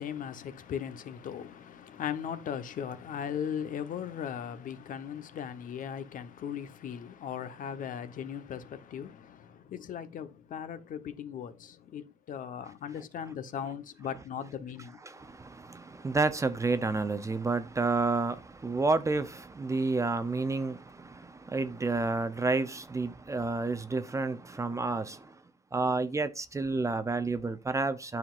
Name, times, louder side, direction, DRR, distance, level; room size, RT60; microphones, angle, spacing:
voice 1, 0.0-15.0, left 8 dB, 50° left, 1.0 m, -38 dB
voice 2, 15.0-25.4 25.7-28.2, right 3 dB, 20° right, 0.6 m, -30 dB
9.6 x 5.8 x 2.5 m
cardioid pair, 110°, 17 cm